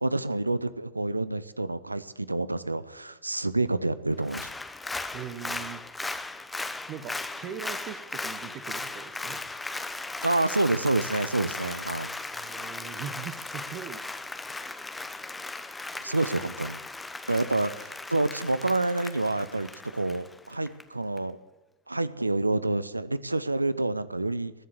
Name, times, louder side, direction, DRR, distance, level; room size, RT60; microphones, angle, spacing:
voice 1, 0.0-4.5 10.2-12.1 16.0-16.8 17.3-21.4 21.9-24.5, right 2 dB, 85° right, 16 dB, 0.8 m, -28 dB
Applause, 4.2-20.8 21.2-21.3, left 2 dB, 10° left, 1.0 m, -37 dB
voice 2, 5.1-5.9 6.9-9.5 12.3-14.2, right 9 dB, 35° right, 11 dB, 1.1 m, -40 dB
20.5 x 7.5 x 8.1 m, 1.0 s
figure-of-eight pair, 90°, 0 cm